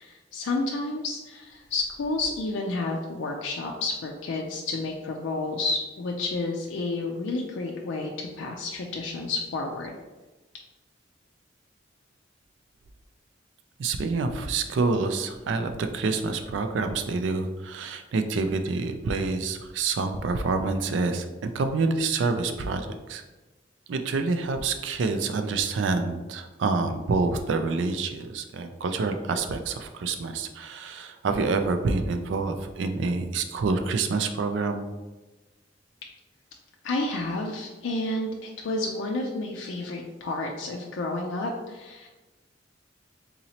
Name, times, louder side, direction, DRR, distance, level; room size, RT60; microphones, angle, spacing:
voice 1, 0.0-9.9 36.8-42.1, left 2 dB, 85° left, 0 dB, 0.4 m, -30 dB
voice 2, 13.8-23.2 23.9-34.8, right 3 dB, 75° right, 7 dB, 0.4 m, -27 dB
3.9 x 2.9 x 2.8 m, 1.2 s
head